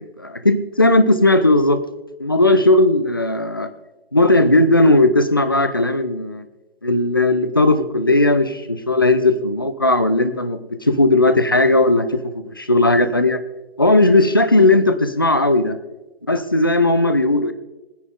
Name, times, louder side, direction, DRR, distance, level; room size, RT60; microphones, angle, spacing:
voice 1, 0.0-1.8 2.2-3.7 4.1-6.5 6.8-13.4 13.8-15.8 16.3-17.5, left 2 dB, 25° left, 11 dB, 0.4 m, -16 dB
19.0 x 10.0 x 3.7 m, 1.0 s
figure-of-eight pair, 160°, 30 cm